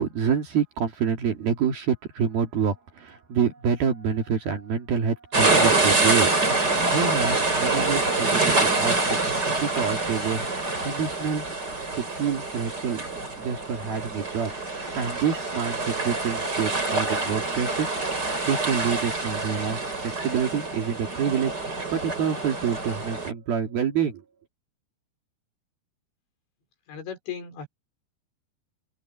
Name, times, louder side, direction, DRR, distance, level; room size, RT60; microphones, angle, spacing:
voice 1, 0.0-9.2 9.5-10.4 10.8-11.5 12.0-13.0 13.4-17.9 18.5-19.8 20.2-24.2, right 7 dB, 60° right, 4.0 m, -27 dB
sound 1, 5.3-23.3, right 3 dB, 20° right, 5.6 m, -26 dB
voice 2, 26.9-27.7, left 8 dB, 80° left, 7.3 m, -36 dB
open air
omnidirectional pair, 5.2 m